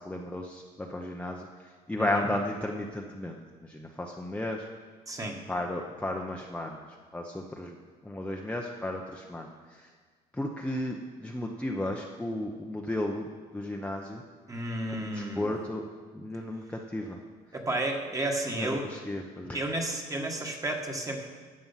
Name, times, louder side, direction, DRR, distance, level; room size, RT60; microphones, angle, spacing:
voice 1, 0.0-4.7 5.5-6.8 7.1-7.8 8.0-9.9 10.3-13.3 13.5-14.2 14.9-15.8 16.1-17.2 18.6-19.6, left 1 dB, 5° left, 0 dB, 0.9 m, -34 dB
voice 2, 2.0-2.3 5.1-5.4 14.5-15.5 17.5-18.9 19.5-21.3, right 1 dB, 20° right, 2 dB, 1.7 m, -32 dB
12.5 x 7.7 x 5.8 m, 1.5 s
cardioid pair, 110°, 17 cm